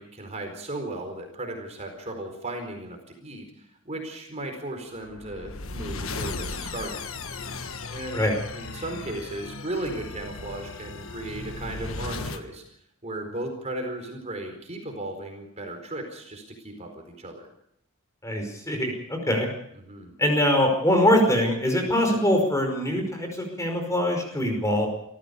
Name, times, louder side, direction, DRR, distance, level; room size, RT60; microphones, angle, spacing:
voice 1, 0.0-7.0 7.9-8.2 8.5-12.6 13.0-17.5 19.7-20.1 22.1-22.2, right 1 dB, 30° right, 4 dB, 4.4 m, -36 dB
sound 1, 5.0-12.4, left 3 dB, 65° left, 1.5 m, -36 dB
voice 2, 18.2-19.5 20.2-24.9, left 1 dB, 15° left, 3 dB, 5.3 m, -23 dB
27.5 x 15.0 x 7.0 m, 0.73 s
head